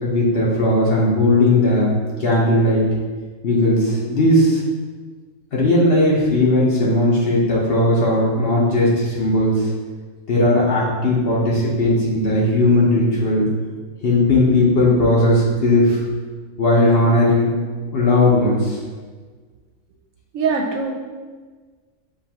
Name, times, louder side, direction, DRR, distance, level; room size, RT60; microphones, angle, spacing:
voice 1, 0.0-1.9 2.2-2.8 3.4-4.6 5.5-9.7 10.3-13.5 14.0-16.0 16.6-17.5 17.9-18.8, left 1 dB, 50° left, -5 dB, 0.9 m, -17 dB
voice 2, 20.3-20.9, right 5 dB, 70° right, 0 dB, 0.9 m, -21 dB
6.9 x 2.5 x 2.8 m, 1.5 s
omnidirectional pair, 1.6 m